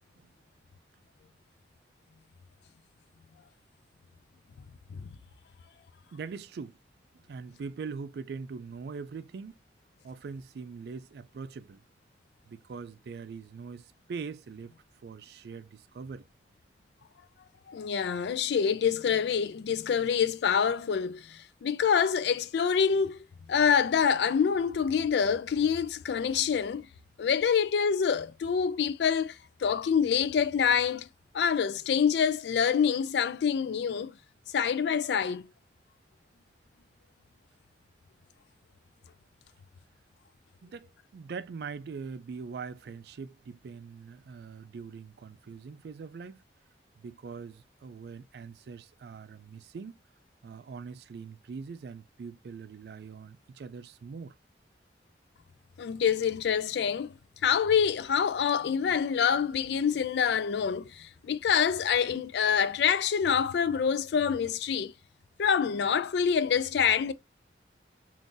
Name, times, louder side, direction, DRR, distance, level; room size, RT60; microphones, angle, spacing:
voice 1, 6.1-6.8 7.1-9.6 10.0-11.8 12.5-14.7 15.0-16.3 40.6-46.4 47.0-50.0 50.4-54.3, right 5 dB, 60° right, 0.3 m, -42 dB
voice 2, 17.7-23.2 23.5-26.9 27.2-31.1 31.3-34.1 34.5-35.5 55.8-57.1 57.4-64.9 65.4-67.1, left 7 dB, 70° left, 0.3 m, -26 dB
3.7 x 2.6 x 2.5 m
head